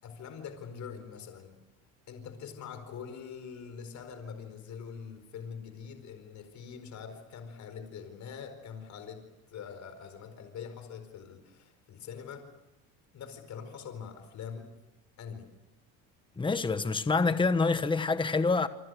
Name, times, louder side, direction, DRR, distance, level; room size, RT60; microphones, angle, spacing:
voice 1, 0.0-1.6 2.1-12.5 13.1-14.7 15.2-15.5, left 7 dB, 50° left, 4.6 m, -44 dB
voice 2, 16.4-18.7, left 4 dB, 15° left, 1.3 m, -26 dB
27.5 x 26.5 x 6.6 m
cardioid pair, 120°, 36 cm